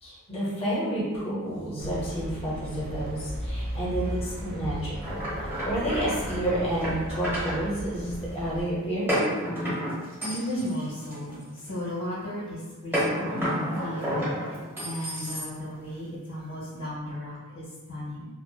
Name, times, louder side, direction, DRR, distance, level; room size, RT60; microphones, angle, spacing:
voice 1, 0.0-9.1, right 1 dB, 25° left, -7 dB, 0.7 m, -30 dB
sound 1, 1.8-8.6, equal, 40° right, 0.4 m, -36 dB
sound 2, 5.0-7.6 9.1-11.7 12.9-15.8, equal, 10° right, 0.9 m, -30 dB
voice 2, 10.2-11.4 11.7-13.5 13.8-14.2 14.8-18.3, equal, 80° left, -10 dB, 1.0 m, -35 dB
2.7 x 2.0 x 2.2 m, 1.3 s
head